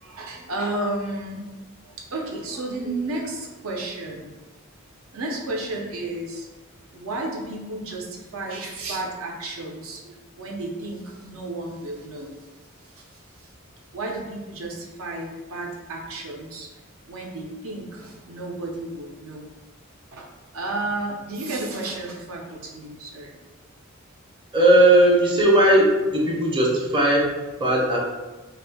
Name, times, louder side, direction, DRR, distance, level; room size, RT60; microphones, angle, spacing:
voice 1, 0.0-1.5 1.8-4.4 5.1-6.5 6.9-12.3 12.8-13.5 13.9-16.7 17.1-19.5 20.1-20.3 20.5-23.3, right 2 dB, 75° right, 0 dB, 0.6 m, -32 dB
voice 2, 24.5-27.3 27.6-28.0, right 1 dB, 25° right, -4 dB, 0.6 m, -17 dB
2.6 x 2.3 x 3.4 m, 1.2 s
head